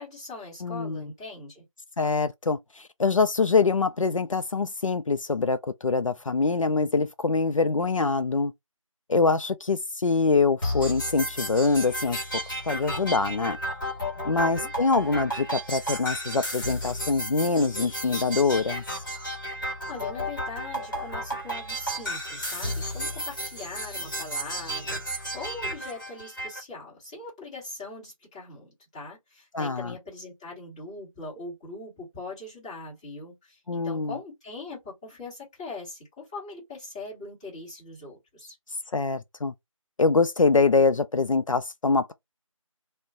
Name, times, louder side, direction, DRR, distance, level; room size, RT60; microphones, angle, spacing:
voice 1, 0.0-1.6 14.1-14.7 19.8-38.6, left 3 dB, 10° left, 1.1 m, -41 dB
voice 2, 0.6-1.1 2.0-8.5 9.1-13.6 14.3-19.0 29.5-29.9 33.7-34.1 38.9-39.5 40.0-42.1, left 4 dB, 70° left, 0.4 m, -24 dB
sound 1, 10.6-26.6, equal, 40° left, 1.1 m, -33 dB
2.3 x 2.2 x 3.6 m
figure-of-eight pair, 165°, 18 cm